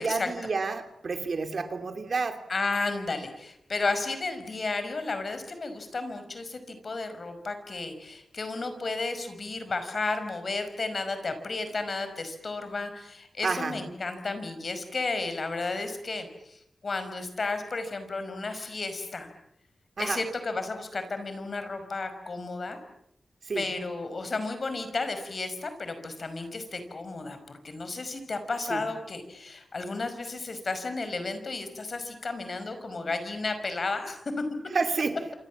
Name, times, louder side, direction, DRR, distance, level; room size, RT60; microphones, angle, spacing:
voice 1, 0.0-2.4 13.4-13.8 20.0-20.2 23.5-23.6 28.7-28.8 34.7-35.2, right 4 dB, 60° right, 7 dB, 3.0 m, -29 dB
voice 2, 2.5-19.3 20.0-22.8 23.6-34.2, left 3 dB, 55° left, 9 dB, 5.4 m, -33 dB
27.5 x 25.5 x 7.4 m, 0.78 s
wide cardioid pair, 80°, 0 cm